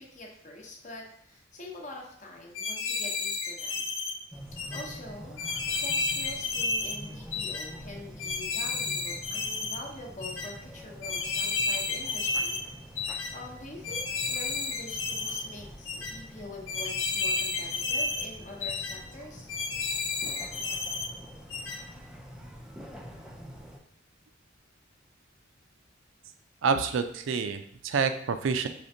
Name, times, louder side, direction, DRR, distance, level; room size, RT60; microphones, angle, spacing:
voice 1, 0.0-3.9 4.7-5.4 5.8-12.6 13.0-19.5, left 1 dB, 40° left, -1 dB, 0.8 m, -45 dB
sound 1, 2.5-4.1 4.6-4.8 5.4-7.0 7.3-7.7 8.2-9.8 10.2-10.5 11.0-12.6 13.0-13.3 13.8-15.4 15.9-16.1 16.7-18.3 18.6-19.0 19.5-21.1 21.5-21.8, left 4 dB, 80° left, 0.6 m, -31 dB
sound 2, 4.3-23.8, equal, 5° right, 0.4 m, -46 dB
voice 2, 26.6-28.7, right 5 dB, 75° right, 9 dB, 0.4 m, -28 dB
5.0 x 3.3 x 2.7 m, 0.69 s
head